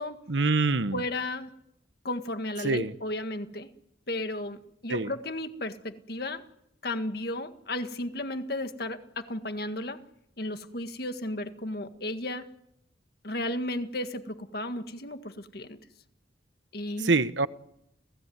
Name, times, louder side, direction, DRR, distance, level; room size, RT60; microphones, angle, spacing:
voice 1, 0.3-1.0 2.6-2.9 4.9-5.1 17.0-17.5, right 3 dB, 80° right, 1.0 m, -25 dB
voice 2, 0.9-1.5 2.0-3.7 4.1-6.4 6.8-10.0 10.4-12.5 13.2-15.8 16.7-17.1, left 1 dB, 55° left, 1.9 m, -34 dB
30.0 x 17.5 x 9.5 m
head